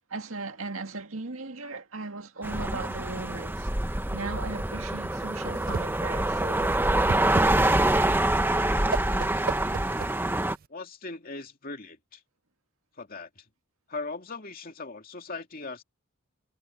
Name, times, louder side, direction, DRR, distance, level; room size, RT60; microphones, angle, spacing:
voice 1, 0.1-7.0, right 3 dB, 80° right, 2.1 m, -38 dB
sound 1, 2.4-10.6, right 1 dB, 10° right, 0.9 m, -26 dB
Whoosh swoosh swish, 5.1-10.6, right 5 dB, 45° right, 0.4 m, -36 dB
voice 2, 10.7-12.2 13.0-13.4 13.9-15.8, left 3 dB, 45° left, 2.6 m, -39 dB
head